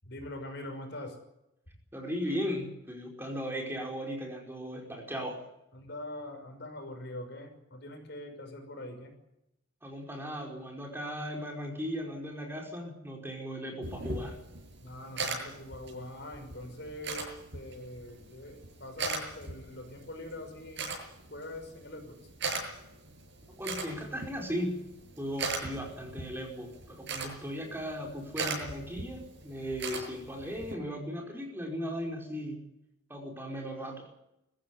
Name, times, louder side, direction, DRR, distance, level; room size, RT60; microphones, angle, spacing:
voice 1, 0.0-1.2 5.7-9.1 14.8-20.9 21.3-22.2, left 1 dB, 60° left, 6 dB, 6.0 m, -43 dB
voice 2, 1.9-5.4 9.8-14.4 23.5-24.8 25.2-32.6 33.1-34.1, equal, 10° right, 1 dB, 5.0 m, -37 dB
sound 1, 13.8-30.7, right 3 dB, 65° right, 7.6 m, -40 dB
22.5 x 15.5 x 9.8 m, 0.86 s
head